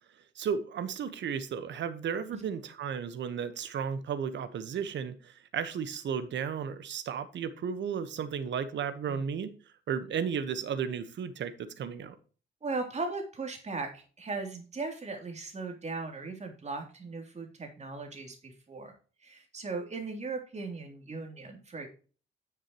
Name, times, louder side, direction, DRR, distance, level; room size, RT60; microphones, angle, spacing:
voice 1, 0.3-9.5 9.9-12.2, right 7 dB, 65° right, 12 dB, 1.3 m, -34 dB
voice 2, 12.6-18.9 19.2-21.9, right 3 dB, 35° right, 4 dB, 3.3 m, -38 dB
10.5 x 7.4 x 3.1 m, 0.37 s
cardioid pair, 90°, 20 cm